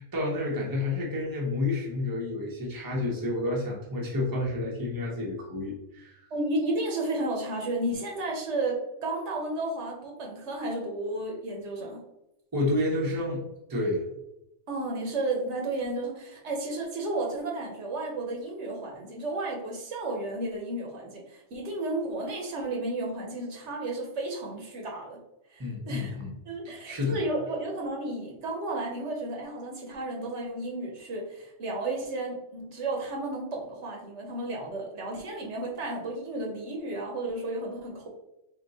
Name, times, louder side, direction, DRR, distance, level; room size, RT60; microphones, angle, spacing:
voice 1, 0.0-6.2 12.5-13.4 13.7-14.0 25.6-26.3 26.6-27.2, left 2 dB, 20° right, -2 dB, 0.8 m, -30 dB
voice 2, 6.3-12.0 14.7-25.2 25.5-26.1 26.5-38.1, right 2 dB, 70° right, 0 dB, 1.1 m, -33 dB
3.7 x 2.7 x 4.0 m, 0.89 s
omnidirectional pair, 1.2 m